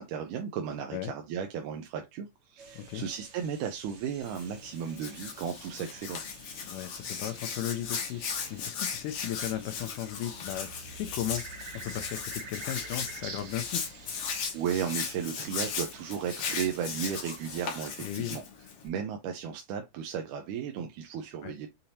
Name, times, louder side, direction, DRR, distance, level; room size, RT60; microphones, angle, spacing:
voice 1, 0.0-6.2 14.5-18.4 18.8-21.7, right 8 dB, 80° right, 2.1 m, -35 dB
sound 1, 2.6-17.8, right 4 dB, 50° right, 1.3 m, -49 dB
voice 2, 2.8-3.1 6.7-13.8 18.0-18.4 21.4-21.5, left 12 dB, 85° left, 2.2 m, -36 dB
Hands, 4.2-18.9, left 6 dB, 60° left, 1.8 m, -37 dB
6.7 x 2.8 x 2.8 m
omnidirectional pair, 3.7 m